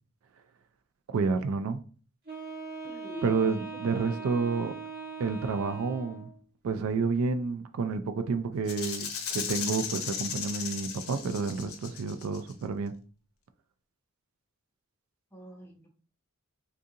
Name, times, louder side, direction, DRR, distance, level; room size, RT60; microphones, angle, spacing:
voice 1, 1.1-1.8 3.2-4.7 5.2-6.3 6.6-9.1 9.3-12.9, right 4 dB, 75° right, 0.3 m, -29 dB
Wind instrument woodwind instrument, 2.3-6.4, right 5 dB, 45° right, 1.3 m, -41 dB
voice 2, 2.9-4.2 15.3-15.9, right 1 dB, 10° left, 0.8 m, -45 dB
Rattle (instrument), 8.7-12.5, left 7 dB, 75° left, 0.6 m, -36 dB
3.8 x 2.5 x 2.7 m
head